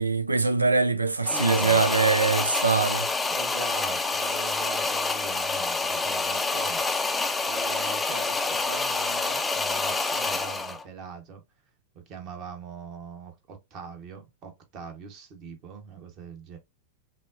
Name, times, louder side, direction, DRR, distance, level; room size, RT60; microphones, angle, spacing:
voice 1, 0.0-3.1, right 4 dB, 80° right, 0.4 m, -23 dB
sound 1, 1.3-10.8, left 3 dB, 10° left, 0.5 m, -27 dB
voice 2, 1.3-1.8 3.3-6.9 7.5-11.4 11.9-16.6, right 5 dB, 40° right, 1.1 m, -41 dB
5.4 x 2.1 x 2.5 m
figure-of-eight pair, 90°, 0 cm